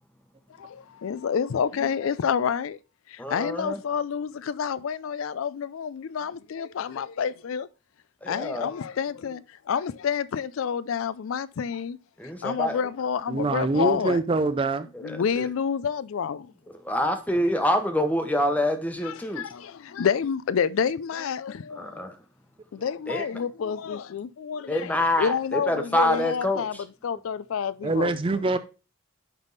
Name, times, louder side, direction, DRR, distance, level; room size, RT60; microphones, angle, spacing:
voice 1, 0.6-2.8 3.1-7.7 8.3-12.0 12.4-14.2 15.0-16.5 19.0-22.0 22.7-24.9 25.2-26.8 27.0-28.1, left 7 dB, 75° left, 0.4 m, -28 dB
voice 2, 3.2-3.8 8.2-8.7 12.2-12.8 15.0-15.5 16.7-19.4 21.8-22.2 23.1-23.3 24.7-26.8, left 1 dB, 5° left, 0.9 m, -26 dB
voice 3, 13.3-14.9 27.8-28.6, right 3 dB, 25° right, 0.4 m, -24 dB
10.5 x 3.5 x 4.0 m
head